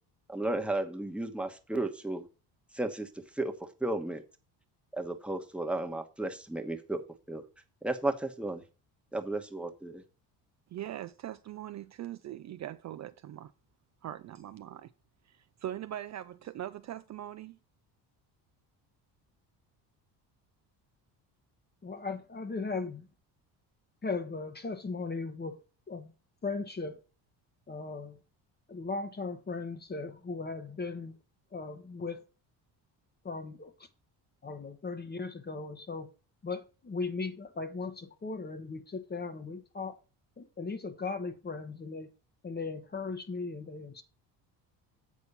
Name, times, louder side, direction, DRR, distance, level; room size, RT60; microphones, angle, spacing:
voice 1, 0.3-2.3 2.7-3.1 3.3-4.2 4.9-7.0 7.3-7.4 7.8-8.6 9.1-10.0, right 2 dB, 5° right, 1.1 m, -33 dB
voice 2, 10.7-13.5 14.0-14.9 15.3-17.6, right 12 dB, 45° right, 0.4 m, -41 dB
voice 3, 21.8-23.1 24.0-25.6 25.9-26.1 26.4-27.0 27.7-28.2 28.7-31.2 31.5-32.2 33.2-33.7 34.4-36.1 36.4-40.0 40.4-42.1 42.4-44.0, left 4 dB, 25° left, 1.0 m, -37 dB
8.4 x 4.3 x 6.7 m
cardioid pair, 105°, 42 cm